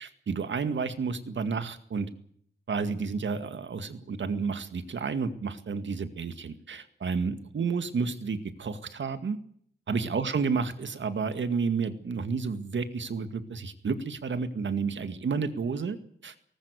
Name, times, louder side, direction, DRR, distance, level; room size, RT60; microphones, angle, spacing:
voice 1, 0.0-2.1 2.7-9.4 9.9-16.0 16.2-16.3, right 5 dB, 75° right, 10 dB, 2.1 m, -31 dB
20.0 x 18.0 x 8.2 m, 0.63 s
wide cardioid pair, 150°, 20 cm